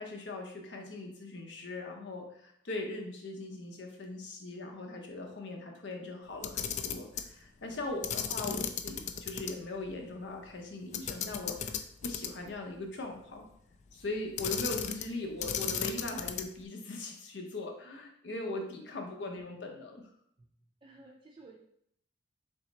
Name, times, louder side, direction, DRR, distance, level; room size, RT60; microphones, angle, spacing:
voice 1, 0.0-13.4 13.9-20.0, left 2 dB, 75° left, 2 dB, 0.8 m, -40 dB
Camera, 6.3-7.3 8.0-9.5 9.9-10.0 10.9-12.5 14.4-15.1 15.4-16.6, left 7 dB, 40° left, 0.3 m, -35 dB
voice 2, 7.8-8.2 18.9-19.3 20.4-20.5 20.8-21.6, right 2 dB, 30° right, -3 dB, 0.5 m, -55 dB
5.6 x 2.0 x 4.0 m, 0.71 s
head